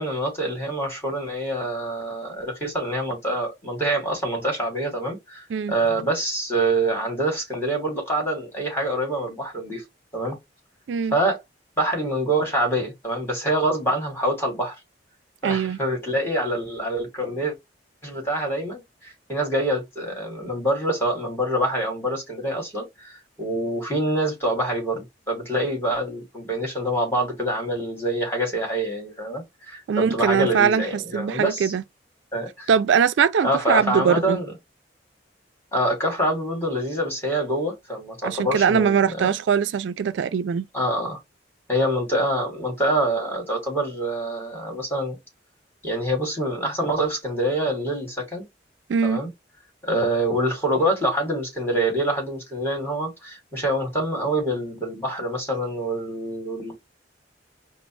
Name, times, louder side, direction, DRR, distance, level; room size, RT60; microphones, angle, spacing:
voice 1, 0.0-9.8 10.1-10.4 11.1-11.4 11.8-14.7 15.4-17.5 18.0-31.7 32.3-32.7 33.4-34.5 35.7-39.3 40.7-41.2 41.7-45.2 45.8-48.4 49.0-49.3 49.8-56.7, right 1 dB, 15° left, 2.3 m, -25 dB
voice 2, 15.4-15.8 29.9-31.8 32.7-34.4 38.2-40.6 48.9-49.2, right 7 dB, 75° right, 0.3 m, -21 dB
5.1 x 2.0 x 3.1 m
head